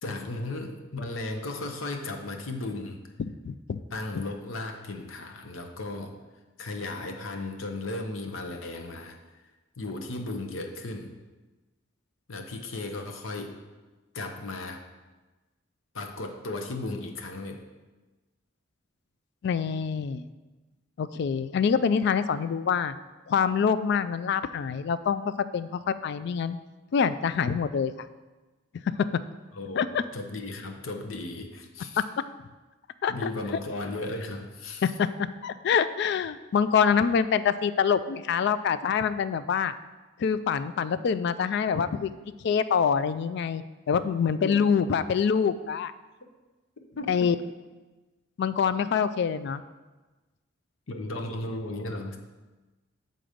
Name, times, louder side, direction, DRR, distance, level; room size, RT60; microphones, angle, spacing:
voice 1, 0.0-3.0 3.9-6.1 6.6-9.2 9.8-11.1 12.3-13.5 14.1-14.8 15.9-17.6 29.5-29.8 30.1-32.0 33.1-34.8 44.4-44.6 47.0-47.3 50.9-52.2, left 2 dB, 80° left, 4 dB, 0.8 m, -35 dB
voice 2, 3.4-3.8 19.4-20.2 21.0-22.9 23.3-26.6 26.9-28.1 29.8-30.0 33.0-33.1 34.8-39.7 40.2-42.1 42.4-45.9 47.1-47.4 48.4-49.6, left 6 dB, 60° left, 14 dB, 0.3 m, -25 dB
7.7 x 3.9 x 5.1 m, 1.2 s
head